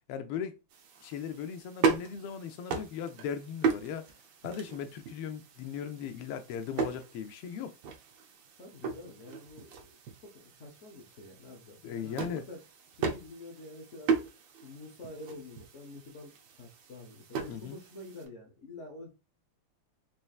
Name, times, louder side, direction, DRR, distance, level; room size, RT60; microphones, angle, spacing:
voice 1, 0.1-0.6 1.0-4.1 4.4-7.7 11.8-12.4 17.5-17.8, left 8 dB, 85° left, 1.5 m, -38 dB
sound 1, 0.7-18.3, right 5 dB, 70° right, 1.4 m, -37 dB
voice 2, 8.6-12.6 12.9-14.3 14.6-19.1, left 2 dB, 65° left, 0.7 m, -48 dB
4.4 x 3.1 x 2.3 m
omnidirectional pair, 2.4 m